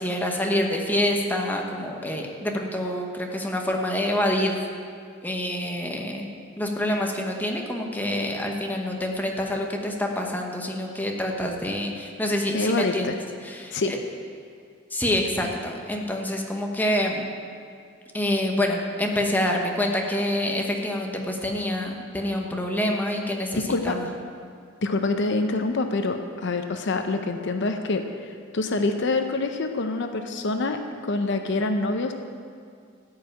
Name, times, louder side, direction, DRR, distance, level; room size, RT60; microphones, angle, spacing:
voice 1, 0.0-4.6 5.2-6.3 6.6-13.1 13.4-14.0 14.9-17.3 18.1-24.1, left 1 dB, 10° left, 1 dB, 1.1 m, -27 dB
voice 2, 12.5-13.2 13.7-13.9 23.5-24.0 24.8-32.1, left 3 dB, 65° left, 6 dB, 0.7 m, -26 dB
13.5 x 5.6 x 8.8 m, 2.2 s
head